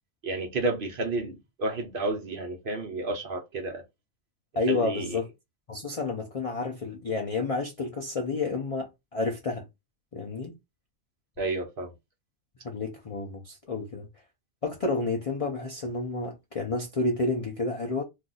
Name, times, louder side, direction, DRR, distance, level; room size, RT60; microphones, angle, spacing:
voice 1, 0.2-3.8 4.7-5.2 11.4-11.9, right 2 dB, 50° right, 0.8 m, -31 dB
voice 2, 4.6-5.3 5.7-9.7 10.1-10.5 12.6-14.1 14.6-18.0, left 3 dB, 55° left, 0.4 m, -30 dB
2.5 x 2.3 x 3.8 m
omnidirectional pair, 1.4 m